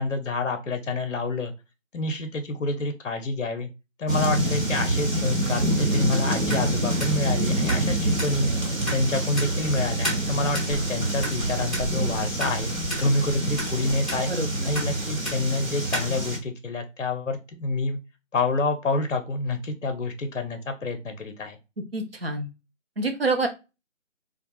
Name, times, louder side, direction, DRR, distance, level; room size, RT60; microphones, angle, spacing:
voice 1, 0.0-1.5 1.9-3.7 4.0-14.3 14.7-18.0 18.3-21.6, left 2 dB, 70° left, 6 dB, 0.6 m, -28 dB
sound 1, 4.1-16.4, right 1 dB, 80° right, 0.9 m, -26 dB
sound 2, 6.4-16.3, equal, ahead, 0.5 m, -35 dB
voice 2, 14.3-14.7 21.9-22.5 23.0-23.5, right 2 dB, 50° right, 5 dB, 0.5 m, -26 dB
2.3 x 2.0 x 2.8 m, 0.27 s
figure-of-eight pair, 165°, 39 cm